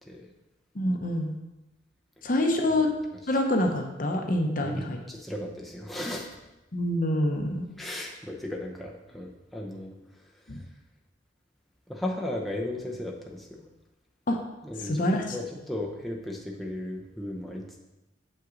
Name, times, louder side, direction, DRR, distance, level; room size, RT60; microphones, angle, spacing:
voice 1, 0.7-1.4 2.2-2.9 3.3-5.0 6.7-7.6 10.5-10.6 14.3-14.4 14.8-15.2, left 1 dB, 50° left, 2 dB, 0.9 m, -26 dB
voice 2, 4.6-6.3 7.8-9.9 11.9-13.7 14.6-15.0 15.3-17.6, left 1 dB, ahead, -2 dB, 0.7 m, -35 dB
7.5 x 5.7 x 3.9 m, 0.99 s
head